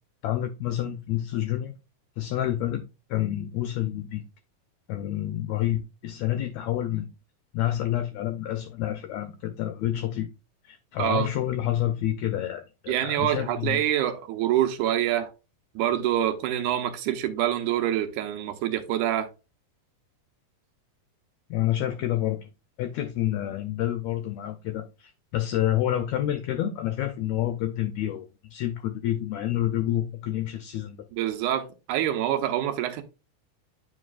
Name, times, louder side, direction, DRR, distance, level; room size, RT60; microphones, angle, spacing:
voice 1, 0.2-1.7 2.2-2.8 3.1-4.2 4.9-7.1 7.5-10.3 10.6-13.8 21.5-22.5 22.8-31.0, left 13 dB, 80° left, 1.7 m, -28 dB
voice 2, 11.0-11.3 12.9-15.3 15.8-19.3 31.2-33.0, right 11 dB, 80° right, 2.1 m, -26 dB
8.4 x 4.6 x 2.4 m
omnidirectional pair, 3.7 m